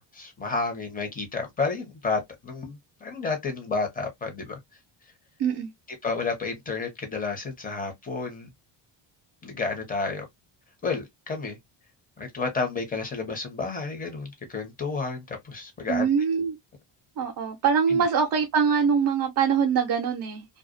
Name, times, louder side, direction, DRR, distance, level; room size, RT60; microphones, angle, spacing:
voice 1, 0.0-4.6 6.0-8.5 9.4-10.2 10.8-11.6 12.2-16.1 17.9-18.0, left 4 dB, 15° left, 0.9 m, -31 dB
voice 2, 5.4-5.7 15.9-16.6 17.2-20.5, right 6 dB, 45° right, 0.6 m, -23 dB
2.3 x 2.3 x 2.5 m
cardioid pair, 115°, 49 cm